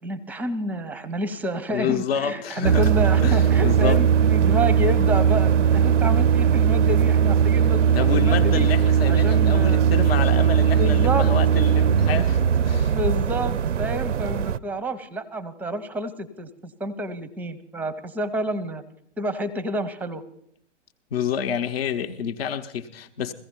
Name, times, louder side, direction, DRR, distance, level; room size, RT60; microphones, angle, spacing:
voice 1, 0.0-8.7 9.0-9.9 10.7-11.3 12.9-18.8 19.2-20.2, equal, 5° right, 0.7 m, -29 dB
voice 2, 1.7-2.9 3.2-4.0 7.9-13.0 21.1-23.3, left 7 dB, 55° left, 1.0 m, -28 dB
sound 1, 2.6-14.6, right 8 dB, 80° right, 0.5 m, -19 dB
16.0 x 15.5 x 4.5 m
figure-of-eight pair, 110°, 36 cm